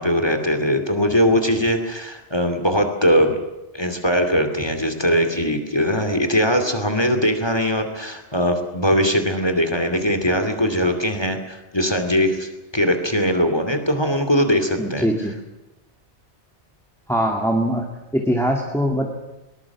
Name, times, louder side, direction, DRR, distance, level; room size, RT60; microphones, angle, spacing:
voice 1, 0.0-3.4 3.7-15.1, equal, 20° left, 7 dB, 2.6 m, -20 dB
voice 2, 14.8-15.3 17.1-19.1, equal, ahead, 1 dB, 2.3 m, -22 dB
22.0 x 20.0 x 7.3 m, 1.0 s
omnidirectional pair, 1.2 m